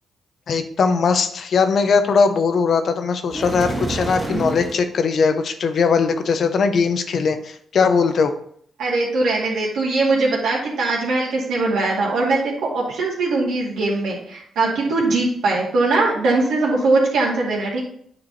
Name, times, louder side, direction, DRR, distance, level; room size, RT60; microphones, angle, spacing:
voice 1, 0.5-8.3, left 5 dB, 60° left, 8 dB, 0.8 m, -19 dB
sound 1, 3.3-4.8, right 2 dB, 10° right, 2.5 m, -27 dB
voice 2, 8.8-17.8, right 3 dB, 85° right, -5 dB, 2.3 m, -21 dB
8.8 x 4.8 x 4.0 m, 0.64 s
cardioid pair, 75°, 0 cm